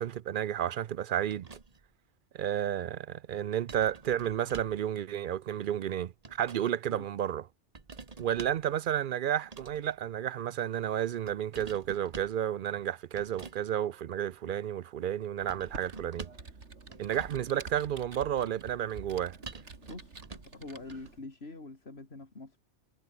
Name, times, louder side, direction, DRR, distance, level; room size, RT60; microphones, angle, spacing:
voice 1, 0.0-1.5 2.3-7.5 8.2-16.3 17.0-19.4, right 10 dB, 60° right, 0.6 m, -32 dB
sound 1, 1.3-1.9 3.7-4.9 5.9-6.7 7.7-8.7 9.4-9.9 11.3-12.4 13.2-13.6 15.5-16.5 16.9-17.5 19.4-20.6 20.9-21.1, right 4 dB, 35° right, 1.4 m, -47 dB
Computer keyboard, 15.4-21.2, right 4 dB, 85° right, 2.8 m, -48 dB
voice 2, 19.9-22.6, left 3 dB, 65° left, 3.4 m, -45 dB
omnidirectional pair, 1.2 m